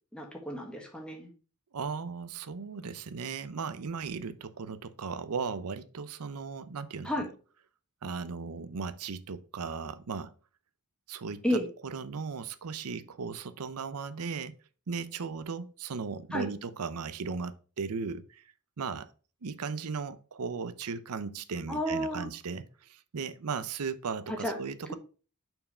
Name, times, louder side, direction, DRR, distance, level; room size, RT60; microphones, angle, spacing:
voice 1, 0.1-1.3 7.0-7.3 11.4-11.7 16.3-16.5 21.7-22.3 24.3-24.6, equal, 5° left, 1.4 m, -31 dB
voice 2, 1.7-7.1 8.0-10.3 11.1-14.6 14.9-18.4 18.8-19.1 19.4-24.9, right 5 dB, 90° right, 0.6 m, -37 dB
5.4 x 4.6 x 5.4 m
head